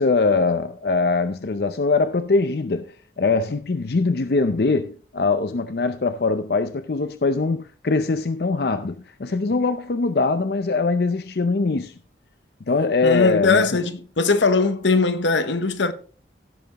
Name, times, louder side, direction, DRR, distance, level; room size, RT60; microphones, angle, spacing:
voice 1, 0.0-11.9 12.7-13.8, left 3 dB, 60° left, 0.5 m, -22 dB
voice 2, 13.0-15.9, left 4 dB, 85° left, 0.9 m, -20 dB
16.0 x 6.9 x 3.0 m
head